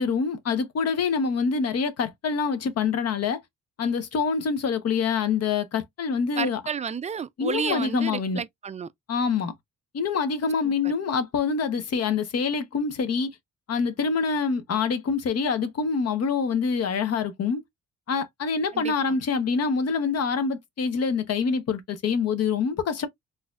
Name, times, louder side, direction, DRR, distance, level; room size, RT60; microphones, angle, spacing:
voice 1, 0.0-3.4 3.8-6.6 7.4-8.4 9.1-9.5 9.9-13.3 13.7-17.6 18.1-23.1, left 5 dB, 55° left, 0.9 m, -25 dB
voice 2, 6.4-8.9 10.6-10.9 18.7-19.2, right 6 dB, 25° right, 0.4 m, -32 dB
3.9 x 2.7 x 2.4 m
cardioid pair, 90°, 30 cm